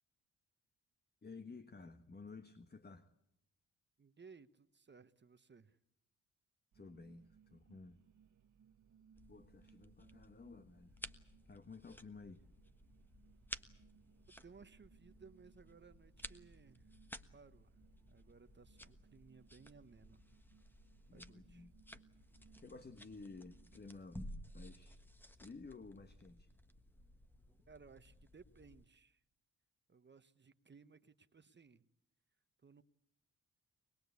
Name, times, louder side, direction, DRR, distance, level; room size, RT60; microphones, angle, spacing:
voice 1, 1.2-3.1 6.7-8.0 9.3-11.2 11.5-12.5 21.1-21.7 22.6-24.2 24.5-25.0 25.3-26.5, left 3 dB, 30° left, 9 dB, 1.4 m, -54 dB
voice 2, 4.0-5.8 14.3-16.9 17.3-17.8 18.1-20.2 21.1-21.7 27.7-29.2 29.9-31.9 32.6-32.8, right 5 dB, 30° right, 11 dB, 1.1 m, -61 dB
sound 1, 6.7-24.0, right 7 dB, 60° right, 1.1 m, -69 dB
sound 2, 9.1-28.9, equal, 5° left, 1.3 m, -55 dB
23.5 x 21.0 x 8.3 m, 0.79 s
cardioid pair, 75°, 34 cm